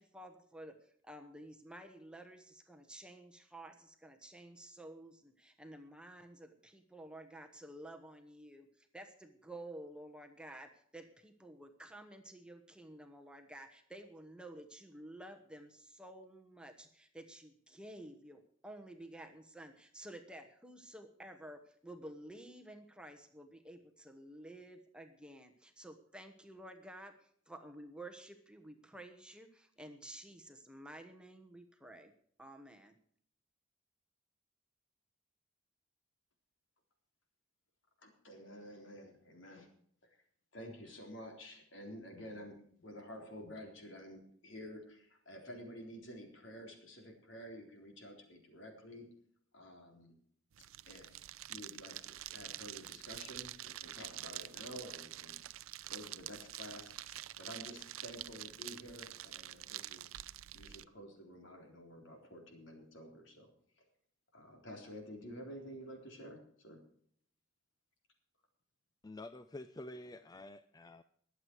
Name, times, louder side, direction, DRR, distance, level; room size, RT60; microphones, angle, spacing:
voice 1, 0.0-32.1 32.4-32.9, right 1 dB, 5° right, 6 dB, 1.1 m, -52 dB
voice 2, 38.0-39.7 40.0-40.2 40.5-49.1 49.5-50.1 50.9-55.3 55.9-60.1 60.5-63.5 63.8-63.9 64.3-66.8, equal, 65° left, 3 dB, 3.8 m, -50 dB
sound 1, 50.5-60.8, right 14 dB, 90° right, 0.5 m, -47 dB
voice 3, 69.0-71.0, left 2 dB, 20° left, 12 dB, 0.4 m, -48 dB
21.5 x 8.1 x 4.6 m, 0.62 s
head